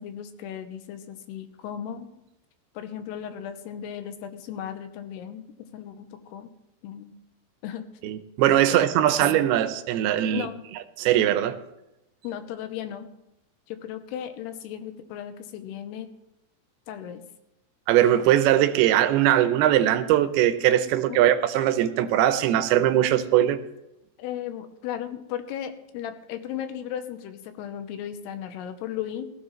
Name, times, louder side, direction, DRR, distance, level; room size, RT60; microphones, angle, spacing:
voice 1, 0.0-2.1 2.8-6.5 6.8-7.1 7.6-8.1 8.7-8.9 9.2-9.4 10.3-10.6 12.2-13.1 13.7-16.1 16.9-17.2 21.1-21.3 24.2-29.3, left 10 dB, 85° left, 3.0 m, -36 dB
voice 2, 8.0-10.5 11.0-11.6 17.9-23.6, right 12 dB, 80° right, 2.6 m, -21 dB
17.5 x 14.0 x 3.2 m
omnidirectional pair, 4.6 m